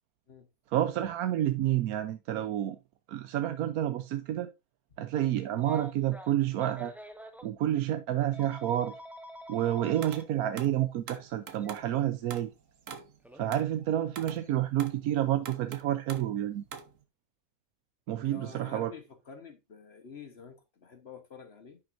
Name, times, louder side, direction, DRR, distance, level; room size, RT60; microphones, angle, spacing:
voice 1, 0.7-2.8 3.1-4.5 5.0-6.9 7.4-8.9 9.5-12.5 13.3-16.6 18.1-18.9, right 12 dB, 85° right, 1.2 m, -29 dB
Telephone, 5.6-7.5 8.3-10.2 11.6-11.7 13.2-13.4, equal, ahead, 1.0 m, -45 dB
sound 1, 10.0-10.3 10.6-11.9 12.3-12.6 12.9-15.1 15.4-16.4 16.7-17.0, right 6 dB, 65° right, 1.5 m, -44 dB
voice 2, 18.2-21.8, left 5 dB, 50° left, 1.3 m, -49 dB
10.5 x 7.3 x 2.6 m
omnidirectional pair, 1.5 m